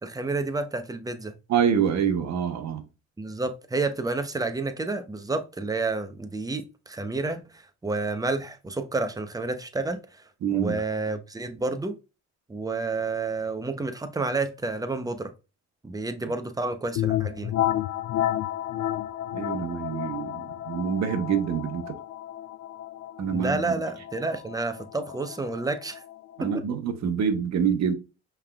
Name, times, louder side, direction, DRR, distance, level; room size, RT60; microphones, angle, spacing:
voice 1, 0.0-1.3 3.2-10.0 10.5-11.9 12.5-15.3 15.8-17.5 23.3-26.0 26.4-26.6, right 3 dB, 10° right, 0.6 m, -30 dB
voice 2, 1.5-2.8 10.4-10.8 19.3-21.9 23.2-23.8 26.4-27.9, right 7 dB, 65° right, 0.9 m, -26 dB
sound 1, 16.9-26.5, left 12 dB, 65° left, 0.5 m, -31 dB
5.5 x 3.4 x 2.3 m
cardioid pair, 90°, 30 cm